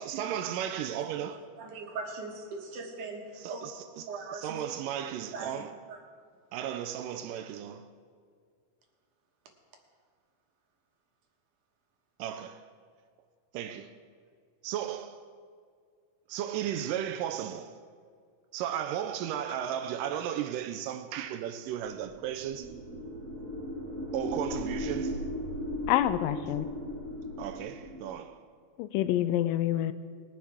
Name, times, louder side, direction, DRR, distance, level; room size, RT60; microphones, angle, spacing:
voice 1, 0.0-1.4 3.4-5.7 6.5-7.9 12.2-12.6 13.5-13.9 14.6-15.2 16.3-17.8 18.5-22.7 24.1-25.2 27.4-28.4, right 10 dB, 90° right, 1.9 m, -35 dB
voice 2, 1.6-3.7 4.0-4.6 5.3-6.0, right 3 dB, 65° right, 2.3 m, -40 dB
sound 1, 22.0-28.1, equal, 50° right, 1.1 m, -37 dB
voice 3, 25.9-26.7 28.8-29.9, left 13 dB, 90° left, 2.0 m, -27 dB
21.0 x 10.0 x 3.6 m
omnidirectional pair, 4.5 m